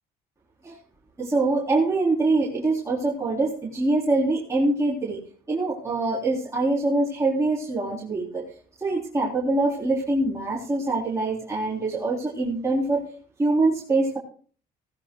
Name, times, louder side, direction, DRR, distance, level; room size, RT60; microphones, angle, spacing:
voice 1, 1.2-5.2 5.5-8.4 8.8-13.0 13.4-14.2, right 2 dB, 15° right, -5 dB, 3.3 m, -24 dB
20.5 x 16.5 x 2.3 m, 0.43 s
cardioid pair, 110°, 17 cm